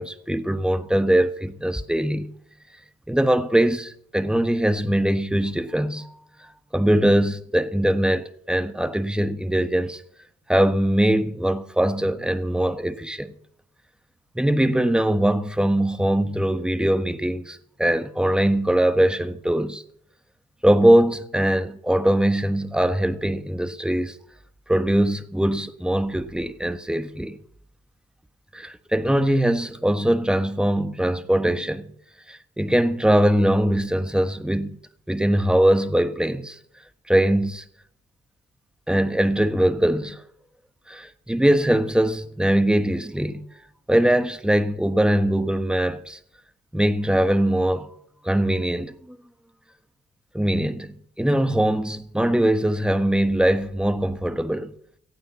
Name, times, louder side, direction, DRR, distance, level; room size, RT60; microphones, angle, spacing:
voice 1, 0.0-2.3 3.1-6.1 6.7-10.0 10.5-13.3 14.3-19.8 20.6-24.2 24.7-27.4 28.5-31.9 32.3-34.8 35.1-36.6 37.1-37.6 38.9-40.2 40.9-43.4 43.9-46.2 46.7-47.9 48.2-49.2 50.3-54.7, right 1 dB, 5° right, 1.3 m, -21 dB
16.0 x 9.2 x 6.9 m
cardioid pair, 90°, 20 cm